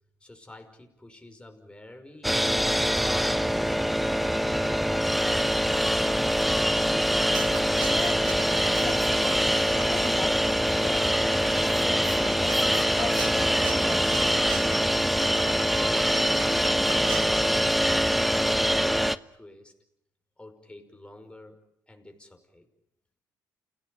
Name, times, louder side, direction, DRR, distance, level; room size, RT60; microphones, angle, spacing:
voice 1, 0.2-3.4 3.8-6.1 13.8-14.8 15.3-19.0 19.3-19.7 20.4-21.6 21.9-22.7, left 1 dB, 15° left, 5 dB, 5.7 m, -49 dB
Ambience Industrial Metal Shop, 2.2-19.2, equal, ahead, 0.9 m, -24 dB
sound 1, 6.9-17.3, right 10 dB, 80° right, 1.9 m, -41 dB
voice 2, 7.9-8.2 8.8-9.5 9.9-11.1 11.5-13.9, left 5 dB, 40° left, 2 dB, 2.6 m, -38 dB
29.0 x 17.0 x 9.4 m, 0.78 s
cardioid pair, 75°, 7 cm